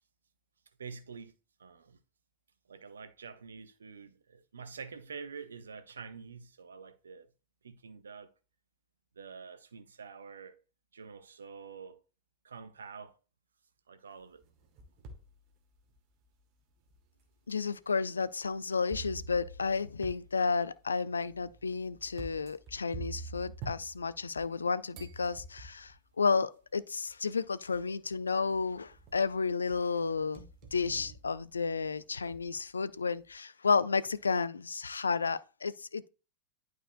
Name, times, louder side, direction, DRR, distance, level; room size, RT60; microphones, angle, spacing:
voice 1, 0.8-1.3 1.6-2.0 2.7-7.3 7.6-8.3 9.1-10.6 10.9-12.0 12.4-13.2 13.9-14.4, right 5 dB, 70° right, 0.8 m, -47 dB
sound 1, 14.4-15.3 15.9-16.0 16.9-17.0 18.9-24.6 24.9-26.0 27.1-27.2 27.7-28.2 28.5-29.3 29.7-32.1, right 3 dB, 40° right, 1.4 m, -47 dB
voice 2, 17.5-30.5 30.7-36.1, left 5 dB, 75° left, 0.4 m, -32 dB
11.0 x 4.7 x 2.2 m
figure-of-eight pair, 90°, 0 cm